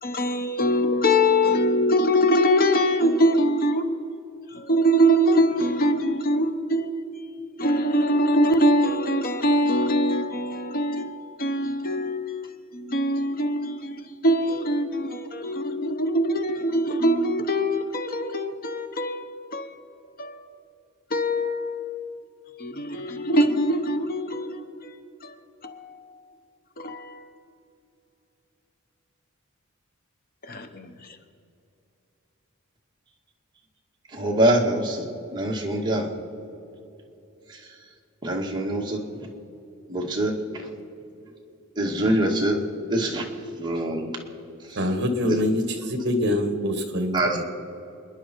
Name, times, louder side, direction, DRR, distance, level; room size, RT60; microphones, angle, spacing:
voice 1, 0.0-3.8 4.5-6.9 7.6-12.5 12.7-19.7 20.2-20.4 21.1-22.3 22.6-24.9 25.2-25.3 25.6-26.2 26.8-27.3 30.4-30.9, equal, 45° left, 1.0 m, -23 dB
voice 2, 34.1-36.1 37.5-37.6 38.2-39.1 39.9-40.4 41.8-42.6 42.9-43.3 43.6-44.1 44.7-44.8 45.2-45.4 47.1-47.4, right 1 dB, 20° right, 2.2 m, -24 dB
voice 3, 44.8-47.4, left 1 dB, 55° right, 1.6 m, -25 dB
28.5 x 10.5 x 4.6 m
head